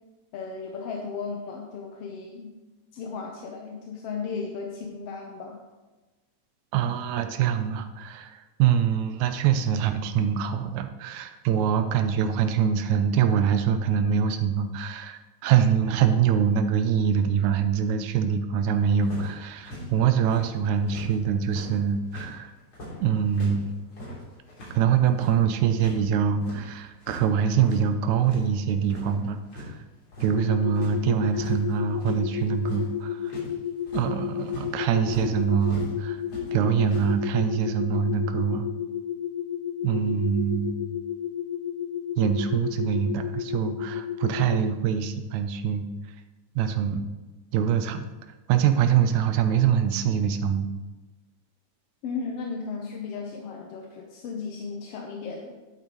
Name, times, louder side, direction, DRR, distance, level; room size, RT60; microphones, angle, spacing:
voice 1, 0.3-2.5 2.9-5.6 52.0-55.5, left 5 dB, 65° left, 1 dB, 1.6 m, -35 dB
voice 2, 6.7-22.5 23.0-23.7 24.7-29.8 30.2-33.3 33.9-36.2 36.5-38.7 39.8-40.8 42.2-45.9 46.6-47.0 47.5-48.1 48.5-50.7, right 8 dB, 80° right, 8 dB, 2.0 m, -24 dB
sound 1, 19.0-21.1 21.4-26.0 26.3-27.2 27.5-28.5 28.8-29.7 30.0-30.4 30.7-35.9 36.2-37.1, equal, 40° left, 4.1 m, -41 dB
sound 2, 30.3-44.7, left 10 dB, 85° left, 1.3 m, -32 dB
11.0 x 8.5 x 3.1 m, 1.2 s
omnidirectional pair, 3.5 m